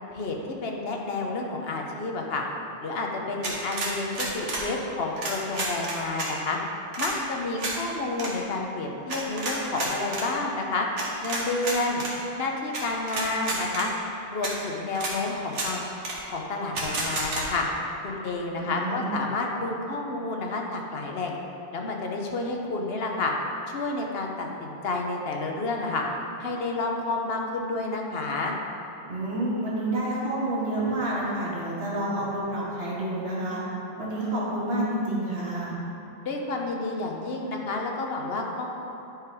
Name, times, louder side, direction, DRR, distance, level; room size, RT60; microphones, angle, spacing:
voice 1, 0.1-2.4 2.8-6.6 7.0-10.9 11.2-12.0 12.4-13.9 14.3-15.8 16.2-17.7 18.0-21.4 21.7-23.3 23.7-26.1 26.4-28.5 36.2-38.7, left 3 dB, 60° left, 1 dB, 1.1 m, -30 dB
sound 1, 3.4-4.7 5.2-6.3 6.9-7.1 7.6-7.8 8.1-8.3 9.1-10.3 11.0-12.1 12.7-12.8 13.1-13.9 14.4-14.5 14.9-15.1 15.5-15.7 16.0-16.2 16.7-17.4, right 2 dB, 85° right, 1.6 m, -30 dB
voice 2, 18.6-19.1 29.1-33.6 34.0-35.7, right 1 dB, 60° right, -8 dB, 2.2 m, -29 dB
10.0 x 4.9 x 4.8 m, 2.9 s
omnidirectional pair, 1.2 m